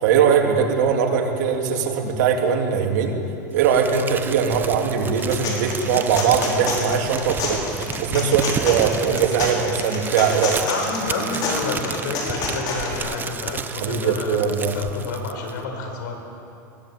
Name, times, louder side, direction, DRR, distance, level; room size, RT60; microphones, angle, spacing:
voice 1, 0.0-3.2 3.5-7.6 8.0-10.6 13.8-14.8, right 7 dB, 65° right, 1 dB, 3.2 m, -20 dB
Crumpling crinkling, 3.6-15.6, right 6 dB, 20° right, 0.9 m, -32 dB
sound 1, 5.0-13.0, left 3 dB, 40° left, 5.1 m, -29 dB
voice 2, 10.6-16.2, left 3 dB, 75° left, 3 dB, 5.0 m, -29 dB
21.0 x 17.0 x 8.4 m, 2.7 s
supercardioid pair, 135°, 10 cm